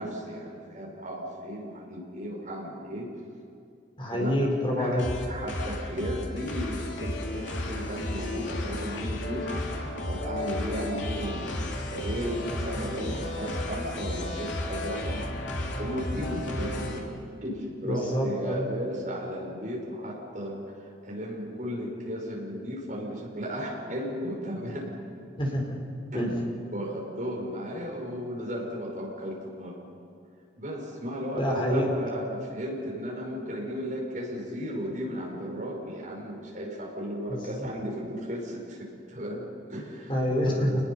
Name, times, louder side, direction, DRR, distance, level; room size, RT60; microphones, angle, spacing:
voice 1, 0.0-3.1 4.1-4.4 4.8-5.0 5.3-15.3 15.6-17.1 17.4-25.0 26.1-26.4 26.7-29.9 30.6-40.2 40.5-40.8, equal, 45° right, -2 dB, 6.1 m, -35 dB
voice 2, 4.0-5.0 17.8-18.6 25.4-25.8 26.1-26.3 31.4-31.9 37.3-37.4 40.1-40.7, equal, 30° left, -1 dB, 5.0 m, -27 dB
sound 1, 5.0-17.0, left 1 dB, 85° left, 3.1 m, -33 dB
29.5 x 20.5 x 5.7 m, 2.4 s
head